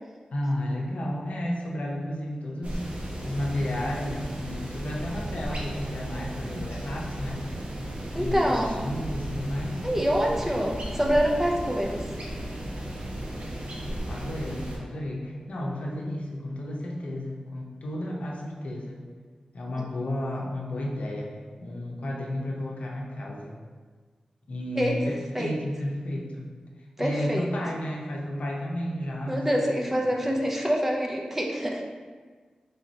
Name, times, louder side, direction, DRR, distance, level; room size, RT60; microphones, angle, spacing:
voice 1, 0.3-2.8 3.2-7.4 8.1-9.8 14.1-19.0 19.5-21.3 21.6-23.6 24.5-26.5 27.0-30.1, left 1 dB, 75° left, -2 dB, 0.6 m, -32 dB
sound 1, 2.6-14.8, right 1 dB, 60° right, 0.7 m, -35 dB
voice 2, 8.1-8.8 9.8-12.1 24.8-25.0 25.3-25.5 27.0-27.5 29.3-31.8, equal, 10° right, -1 dB, 0.5 m, -26 dB
4.2 x 3.4 x 2.8 m, 1.5 s
wide cardioid pair, 75°, 2 cm